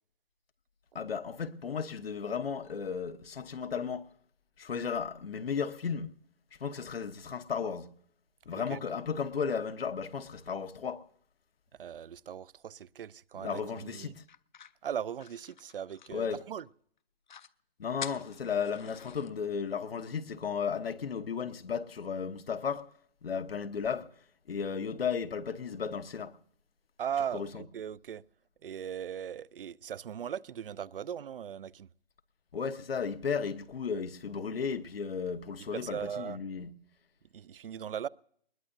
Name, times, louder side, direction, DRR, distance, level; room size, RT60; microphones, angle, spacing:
voice 1, 0.9-4.1 4.6-6.1 6.6-7.9 8.5-11.0 13.3-14.2 16.1-16.4 17.8-22.9 23.2-24.1 24.5-26.4 27.3-27.6 32.5-36.7, left 6 dB, 80° left, 1.1 m, -34 dB
voice 2, 8.5-8.8 11.8-14.1 14.8-16.7 27.0-28.2 28.6-31.9 35.7-36.4 37.3-38.1, right 9 dB, 65° right, 0.5 m, -38 dB
sound 1, 14.3-16.7 17.0-17.1 17.3-17.5 18.0-19.3, left 8 dB, 50° left, 0.5 m, -46 dB
21.0 x 20.5 x 2.6 m
hypercardioid pair, 165°, 29 cm